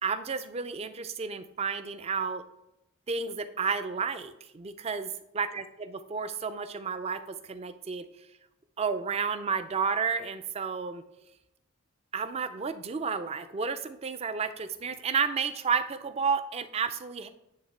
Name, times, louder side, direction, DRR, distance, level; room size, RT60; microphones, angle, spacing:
voice 1, 0.0-2.4 3.1-8.0 8.8-11.0 12.1-17.3, right 5 dB, 25° right, 11 dB, 0.3 m, -31 dB
9.4 x 3.5 x 3.2 m, 0.88 s
head